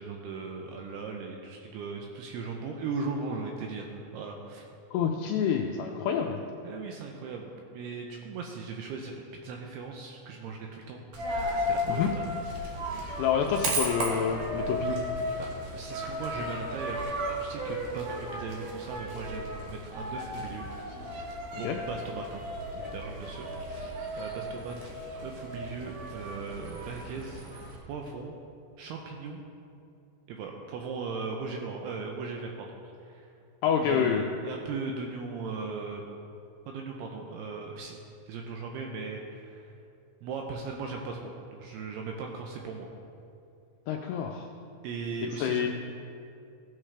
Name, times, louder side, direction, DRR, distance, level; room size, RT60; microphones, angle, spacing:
voice 1, 0.0-4.6 6.6-11.0 11.5-12.3 12.9-13.1 13.5-13.6 15.4-20.7 21.1-22.4 22.7-24.9 25.2-27.6 27.9-28.4 28.8-29.4 30.3-32.7 33.0-33.3 33.8-36.0 36.7-38.0 38.3-39.8 40.2-42.9 44.8-45.7, right 4 dB, 85° right, 1 dB, 2.3 m, -38 dB
voice 2, 4.9-6.4 11.9-12.1 13.2-15.1 21.5-21.8 33.6-34.2 43.9-44.5 45.4-45.7, left 7 dB, 85° left, 1 dB, 2.3 m, -28 dB
Coin (dropping), 11.1-27.8, equal, 65° right, 2.1 m, -35 dB
15.5 x 7.4 x 3.3 m, 2.5 s
omnidirectional pair, 5.3 m